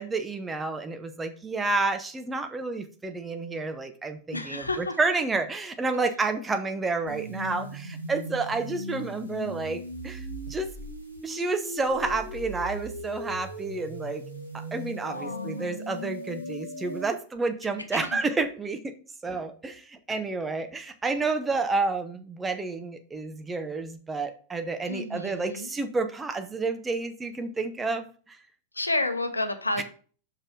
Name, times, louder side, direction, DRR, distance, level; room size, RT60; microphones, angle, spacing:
voice 1, 0.0-10.2 10.5-10.7 11.2-14.2 14.7-18.9 19.2-28.4 29.8-29.9, right 3 dB, 15° right, 0.8 m, -30 dB
voice 2, 4.3-5.0 15.1-15.7 17.9-18.2 24.9-25.7 28.7-29.8, left 2 dB, 80° left, 0.7 m, -31 dB
sound 1, 7.1-17.1, equal, 85° right, 1.4 m, -38 dB
5.7 x 5.3 x 4.7 m
figure-of-eight pair, 90°, 0 cm